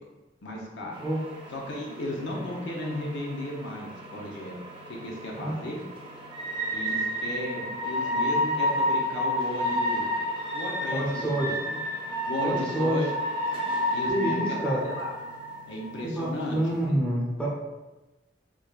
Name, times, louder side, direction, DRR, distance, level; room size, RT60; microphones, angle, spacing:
voice 1, 0.4-0.9 1.5-4.5 4.9-5.8 6.7-10.1 10.5-11.5 12.2-13.1 13.9-15.1 15.7-16.6 16.9-17.0, left 1 dB, 90° left, -1 dB, 0.7 m, -35 dB
sound 1, 0.9-16.9, equal, 30° right, 0.6 m, -31 dB
voice 2, 10.9-11.6 12.4-13.0 14.1-14.9 16.0-17.5, right 1 dB, 5° left, -6 dB, 0.8 m, -28 dB
3.7 x 3.2 x 2.3 m, 1.1 s
head